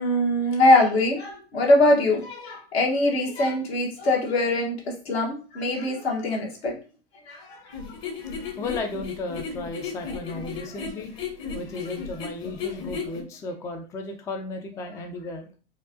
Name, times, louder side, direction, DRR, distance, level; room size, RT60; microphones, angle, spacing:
voice 1, 0.0-4.8 5.0-6.7 7.3-7.8, left 1 dB, 75° left, -1 dB, 1.4 m, -22 dB
sound 1, 7.7-13.2, left 6 dB, 40° left, 1.0 m, -34 dB
voice 2, 8.2-11.1 11.5-15.5, left 2 dB, 10° left, 5 dB, 0.3 m, -35 dB
4.6 x 2.3 x 2.6 m, 0.36 s
hypercardioid pair, 95°, 32 cm